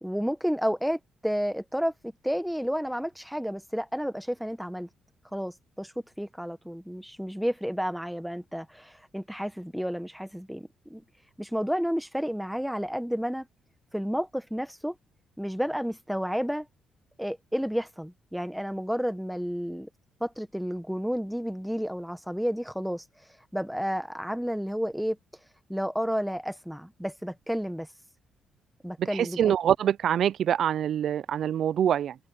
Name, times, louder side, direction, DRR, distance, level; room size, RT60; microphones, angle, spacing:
voice 1, 0.0-4.9 5.3-5.9 6.2-11.0 11.4-13.5 13.9-15.0 15.4-16.7 17.2-19.9 20.2-23.0 23.5-25.2 25.7-27.9 28.8-29.5, equal, ahead, 1.1 m, -31 dB
voice 2, 29.0-32.2, right 9 dB, 65° right, 0.4 m, -25 dB
open air
cardioid pair, 90°, 0 cm